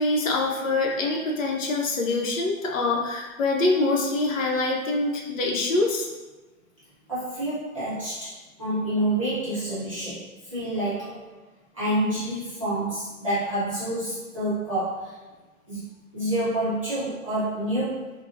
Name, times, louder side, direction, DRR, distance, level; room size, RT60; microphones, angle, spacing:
voice 1, 0.0-6.1, left 2 dB, 60° left, -1 dB, 0.8 m, -25 dB
voice 2, 7.1-8.3 8.6-11.3 11.7-15.2 15.7-15.8 16.1-18.1, right 1 dB, 25° right, -13 dB, 0.5 m, -28 dB
3.7 x 2.0 x 2.5 m, 1.2 s
hypercardioid pair, 175°, 44 cm